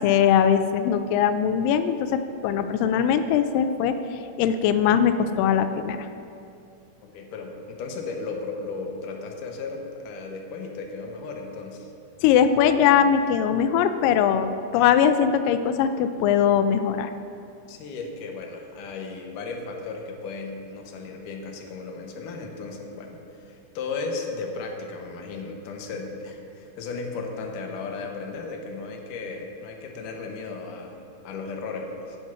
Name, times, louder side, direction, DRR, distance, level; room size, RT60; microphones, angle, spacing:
voice 1, 0.0-4.0 4.4-6.1 12.2-17.1, left 8 dB, 90° left, 9 dB, 1.9 m, -21 dB
voice 2, 7.1-11.9 17.7-23.2 23.4-31.0 31.2-32.2, left 4 dB, 70° left, 2 dB, 2.2 m, -35 dB
9.6 x 8.0 x 6.0 m, 2.6 s
omnidirectional pair, 4.5 m